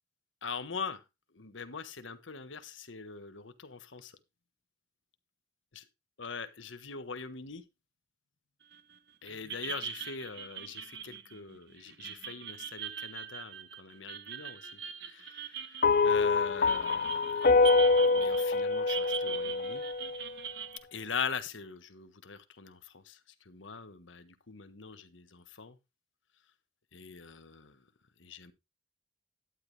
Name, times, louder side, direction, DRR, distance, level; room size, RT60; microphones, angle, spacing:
voice 1, 0.4-1.0 1.3-4.1 6.2-7.6 9.2-17.6 17.9-19.8 20.9-23.2 23.4-25.8 26.9-27.8 28.2-28.5, left 5 dB, 90° left, 1.4 m, -42 dB
sound 1, 8.7-9.0 9.3-20.8, right 8 dB, 60° right, 1.0 m, -42 dB
sound 2, 15.8-20.3, left 4 dB, 50° left, 0.6 m, -25 dB
11.5 x 9.3 x 3.3 m
head